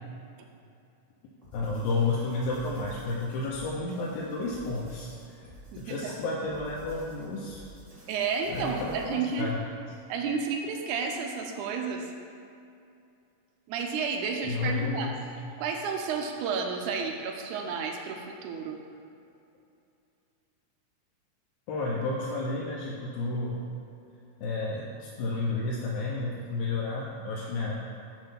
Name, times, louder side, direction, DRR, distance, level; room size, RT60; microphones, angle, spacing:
sound 1, 1.4-9.3, equal, 30° right, 0.6 m, -50 dB
voice 1, 1.5-5.4 5.8-7.7 8.5-9.6 14.4-15.2 21.7-23.6 24.4-27.7, left 3 dB, 80° left, -4 dB, 2.0 m, -31 dB
voice 2, 5.7-6.2 8.1-9.5 10.1-12.1 13.7-15.1 15.6-18.8, right 5 dB, 80° right, 3 dB, 2.0 m, -31 dB
7.0 x 3.1 x 5.7 m, 2.6 s
omnidirectional pair, 3.5 m